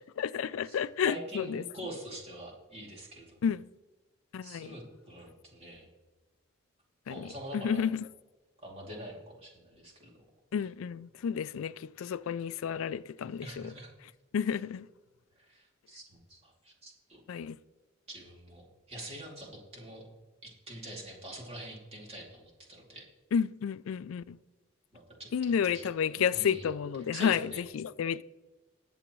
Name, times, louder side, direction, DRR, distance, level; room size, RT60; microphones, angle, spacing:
voice 1, 0.2-1.6 3.4-3.6 4.3-4.7 7.1-8.0 10.5-13.7 14.3-14.9 17.3-17.6 23.3-24.4 25.3-28.2, left 7 dB, 80° left, 0.3 m, -31 dB
voice 2, 1.0-3.4 4.4-5.9 7.1-7.8 8.6-10.1 13.4-13.9 15.5-17.2 18.1-20.1 20.4-23.0 24.9-25.9 26.3-26.7 27.1-27.6, right 1 dB, 30° right, 2.7 m, -45 dB
20.5 x 7.1 x 3.1 m
head